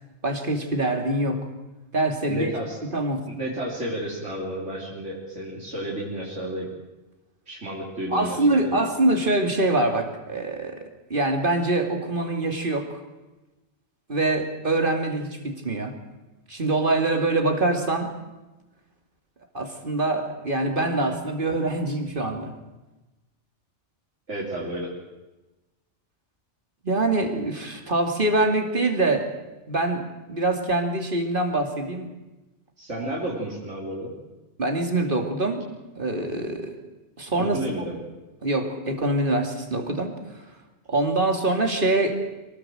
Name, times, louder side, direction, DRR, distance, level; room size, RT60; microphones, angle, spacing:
voice 1, 0.2-1.5 1.9-2.5 2.9-3.2 8.1-13.0 14.1-15.9 16.5-18.1 19.5-22.5 26.8-29.3 29.7-32.2 34.6-35.6 36.0-36.7 37.2-37.6 38.4-40.2 40.9-42.3, right 2 dB, 45° right, 5 dB, 2.9 m, -24 dB
voice 2, 2.3-2.8 3.3-6.7 7.5-8.8 24.3-24.9 32.8-34.1 37.4-38.0, right 1 dB, 85° right, -4 dB, 4.0 m, -32 dB
24.0 x 18.0 x 7.8 m, 1.1 s
omnidirectional pair, 1.2 m